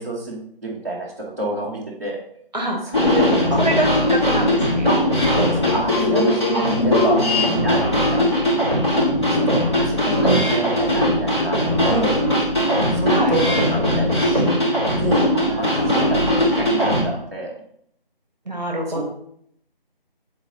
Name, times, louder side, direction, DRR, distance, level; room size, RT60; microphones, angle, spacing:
voice 1, 0.0-2.2 2.8-3.6 4.9-8.9 9.5-11.6 11.9-12.2 12.9-13.4 13.7-14.4 15.0-17.5 18.9-19.0, right 2 dB, 20° right, -11 dB, 1.0 m, -28 dB
sound 1, 2.9-17.0, left 1 dB, 30° left, 2.3 m, -19 dB
voice 2, 3.6-4.9 13.1-13.4 18.4-19.0, right 1 dB, 45° right, 2 dB, 1.2 m, -24 dB
7.6 x 4.0 x 4.1 m, 0.69 s
figure-of-eight pair, 180°, 29 cm